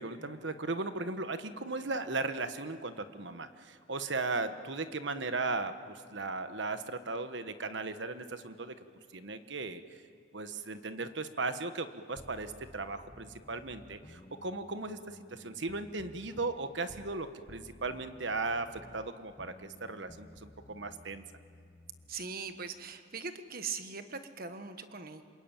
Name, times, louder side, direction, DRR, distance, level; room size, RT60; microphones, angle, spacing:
voice 1, 0.0-8.7 9.1-9.8 10.3-21.2, right 3 dB, 65° right, 9 dB, 1.3 m, -37 dB
sound 1, 12.2-17.2 17.5-22.3, left 1 dB, 25° left, 1.0 m, -55 dB
voice 2, 22.1-25.2, right 5 dB, 50° right, 8 dB, 1.5 m, -40 dB
27.0 x 22.5 x 9.1 m, 2.3 s
head